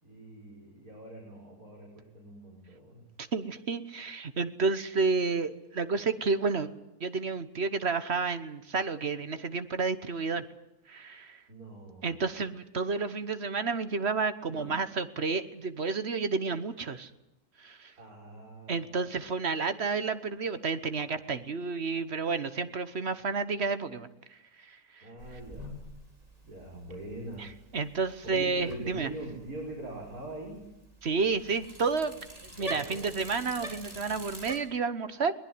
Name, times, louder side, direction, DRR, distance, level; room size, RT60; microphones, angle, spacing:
voice 1, 0.0-3.1 11.5-12.2 14.5-14.8 18.0-19.2 25.0-25.8 26.4-27.5 28.2-30.7 32.6-33.6, right 2 dB, 75° right, -1 dB, 5.6 m, -43 dB
voice 2, 3.2-6.7 7.0-10.4 10.9-11.4 12.0-17.1 17.6-17.9 18.7-25.1 27.4-27.5 27.7-29.1 31.0-32.1 32.6-35.3, right 4 dB, 50° right, 12 dB, 1.3 m, -31 dB
Bicycle, 25.2-34.6, equal, 25° right, 4.2 m, -46 dB
22.0 x 20.0 x 9.5 m, 0.87 s
omnidirectional pair, 1.6 m